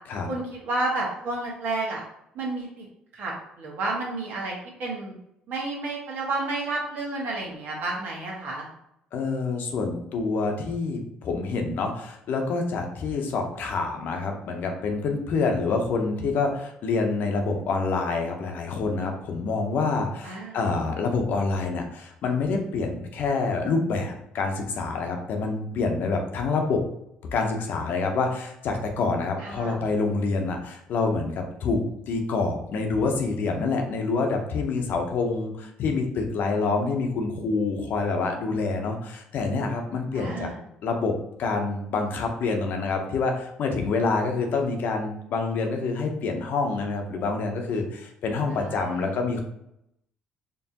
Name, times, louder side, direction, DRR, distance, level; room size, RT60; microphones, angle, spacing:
voice 1, 0.3-2.0 2.3-2.8 3.1-5.2 5.5-8.7 20.2-20.6 29.4-29.8 40.1-40.6 48.5-49.0, right 2 dB, 65° right, -3 dB, 1.5 m, -31 dB
voice 2, 9.1-26.8 27.3-40.5 40.8-41.1 41.4-49.4, left 4 dB, 65° left, 3 dB, 0.8 m, -27 dB
4.5 x 3.0 x 2.9 m, 0.78 s
supercardioid pair, 70°, 3 cm